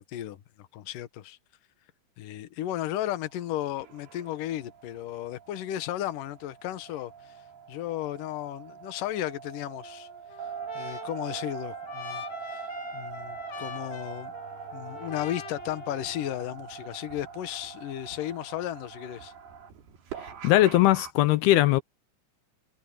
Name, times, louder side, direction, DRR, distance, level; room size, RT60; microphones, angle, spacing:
voice 1, 0.0-1.4 2.2-7.3 7.7-10.1 10.7-12.2 12.5-12.6 12.9-14.3 14.7-19.3, left 13 dB, 65° left, 2.7 m, -34 dB
sound 1, 3.1-21.1, right 7 dB, 80° right, 4.8 m, -43 dB
Trumpet, 9.8-16.6, left 5 dB, 45° left, 4.8 m, -44 dB
voice 2, 20.4-21.8, left 15 dB, 85° left, 2.9 m, -20 dB
omnidirectional pair, 4.4 m